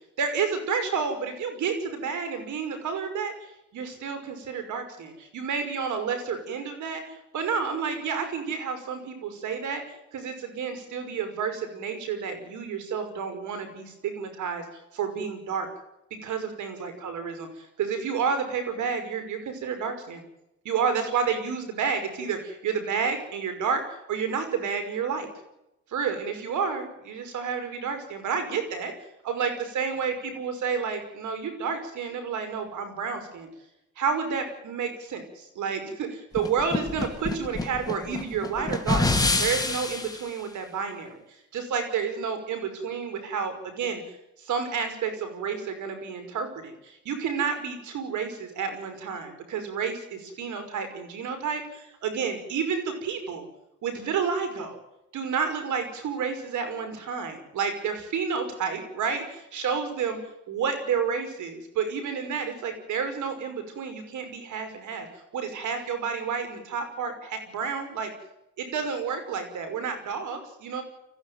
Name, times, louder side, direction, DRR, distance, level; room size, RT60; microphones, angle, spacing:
voice 1, 0.2-14.6 14.9-15.7 16.2-20.2 20.6-23.8 24.1-25.3 25.9-28.9 29.2-33.5 34.0-39.1 39.4-41.2 41.5-44.0 44.4-53.5 53.8-54.8 55.1-60.2 60.5-65.1 65.3-68.1 68.6-70.8, right 6 dB, 75° right, 7 dB, 5.7 m, -30 dB
sound 1, 36.3-40.2, left 2 dB, 10° left, 2.8 m, -27 dB
24.0 x 15.0 x 9.5 m, 0.88 s
cardioid pair, 90°, 30 cm